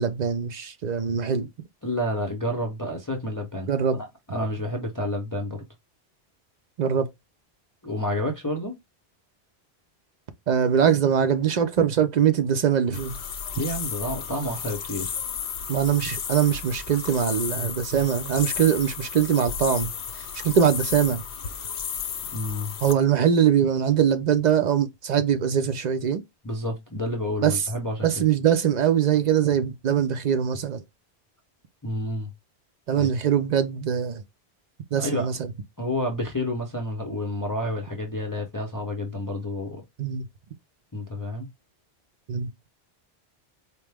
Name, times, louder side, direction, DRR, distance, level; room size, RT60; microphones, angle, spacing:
voice 1, 0.0-1.5 3.7-4.0 6.8-7.1 10.5-13.2 15.7-21.2 22.8-26.2 27.4-27.6 28.0-30.8 32.9-34.2 34.9-35.5 40.0-40.3 42.3-42.5, right 8 dB, 55° right, 0.5 m, -22 dB
voice 2, 1.8-5.6 7.8-8.7 13.5-15.1 21.6-21.8 22.3-22.7 26.4-28.2 31.8-32.3 32.9-33.1 34.9-35.3 35.8-39.8 40.9-41.5, left 1 dB, 25° left, 0.5 m, -30 dB
sound 1, 12.9-22.9, left 7 dB, 75° left, 0.8 m, -33 dB
4.4 x 2.0 x 3.3 m
omnidirectional pair, 1.1 m